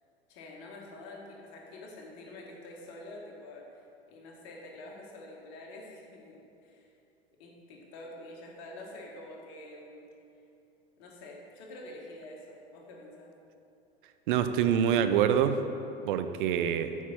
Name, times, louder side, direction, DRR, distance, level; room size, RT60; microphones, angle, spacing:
voice 1, 0.3-6.9 7.4-10.1 11.0-13.3, left 1 dB, 45° left, -1 dB, 1.7 m, -47 dB
voice 2, 14.3-15.6 16.1-16.9, right 9 dB, 55° right, 9 dB, 0.6 m, -25 dB
8.3 x 4.7 x 5.5 m, 2.7 s
figure-of-eight pair, 85°, 31 cm